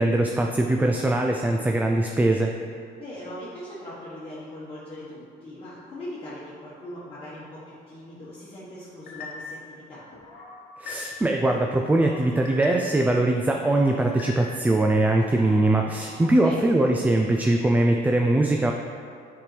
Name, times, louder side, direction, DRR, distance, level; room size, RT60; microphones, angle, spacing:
voice 1, 0.0-2.5 10.8-18.7, right 2 dB, 10° right, 2 dB, 0.3 m, -22 dB
voice 2, 3.0-10.0 16.4-16.7, left 1 dB, 30° left, -10 dB, 1.3 m, -40 dB
sound 1, 9.1-9.6 10.1-11.4 11.7-13.1 13.5-14.8 15.2-15.7, left 3 dB, 70° left, 1.1 m, -40 dB
7.4 x 5.2 x 3.3 m, 2.5 s
cardioid pair, 110°, 17 cm